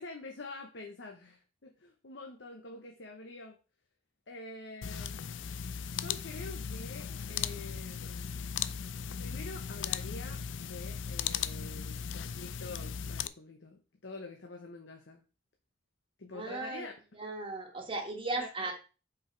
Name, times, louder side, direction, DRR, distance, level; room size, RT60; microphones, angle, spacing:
voice 1, 0.0-3.6 4.3-5.2 5.9-8.3 9.2-15.2 16.2-16.9 18.4-18.7, left 2 dB, 75° left, 3 dB, 1.0 m, -46 dB
sound 1, 4.8-13.3, left 7 dB, 90° left, 0.4 m, -37 dB
voice 2, 16.3-16.9 17.1-18.7, right 2 dB, 30° right, 1 dB, 1.5 m, -36 dB
6.1 x 4.9 x 4.6 m, 0.34 s
head